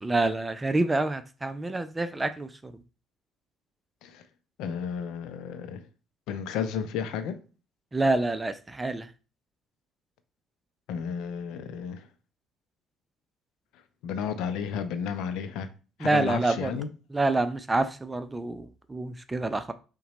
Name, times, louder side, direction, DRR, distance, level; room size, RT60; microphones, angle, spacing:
voice 1, 0.0-2.7 7.9-9.1 16.0-16.7 17.1-19.7, right 2 dB, 20° right, 0.5 m, -27 dB
voice 2, 4.6-5.9 6.3-7.4 10.9-12.1 14.0-15.7 16.0-16.9, left 7 dB, 70° left, 0.5 m, -32 dB
5.6 x 2.2 x 4.1 m
hypercardioid pair, 50°, 0 cm